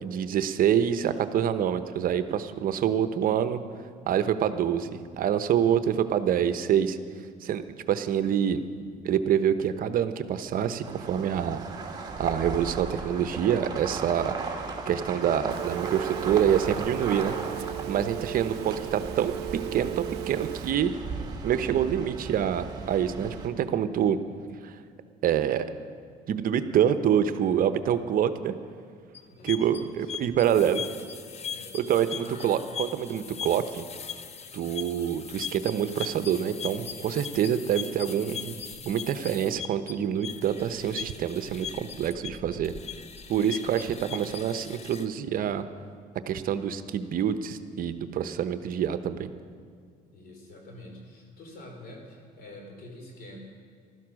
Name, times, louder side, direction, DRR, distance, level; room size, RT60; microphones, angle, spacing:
voice 1, 0.0-3.6 4.0-7.0 7.4-8.6 9.0-11.6 12.2-14.4 14.9-17.4 17.9-19.3 19.7-21.0 21.4-24.2 24.6-24.8 25.2-25.7 26.3-28.5 29.4-30.8 31.7-33.9 34.5-38.5 38.8-42.7 43.3-45.6 46.3-49.3, right 9 dB, 60° right, 11 dB, 0.8 m, -26 dB
sound 1, 10.8-23.5, right 4 dB, 25° right, 2.2 m, -36 dB
Telephone, 15.5-20.7, right 15 dB, 75° right, 0.4 m, -36 dB
sound 2, 29.1-45.1, left 8 dB, 40° left, 0.8 m, -39 dB
voice 2, 29.3-30.1 31.5-32.6 43.5-44.2 50.1-53.4, left 1 dB, 60° left, 2 dB, 3.9 m, -47 dB
15.5 x 12.5 x 6.3 m, 2.2 s
cardioid pair, 110°, 17 cm